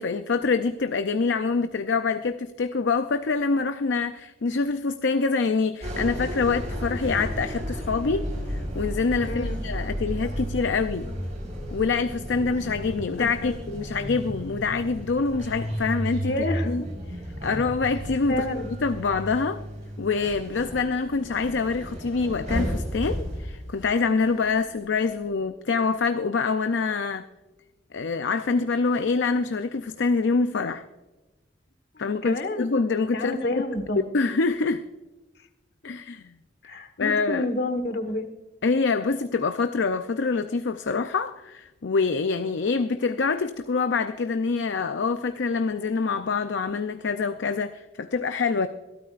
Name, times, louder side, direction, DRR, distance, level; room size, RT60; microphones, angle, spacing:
voice 1, 0.0-11.1 11.7-16.8 17.4-19.6 20.0-27.3 27.9-30.8 32.0-33.4 34.1-34.8 35.8-36.3 37.0-37.5 38.6-48.7, left 4 dB, 75° left, 0.5 m, -25 dB
sound 1, 5.8-24.5 24.8-25.2, equal, 40° right, 4.9 m, -33 dB
voice 2, 9.2-9.6 13.2-13.6 16.2-16.9 18.3-18.7 31.9-32.7 33.1-34.0 35.8-35.9 36.6-38.3, left 1 dB, 60° left, 1.5 m, -29 dB
21.5 x 13.0 x 2.5 m
head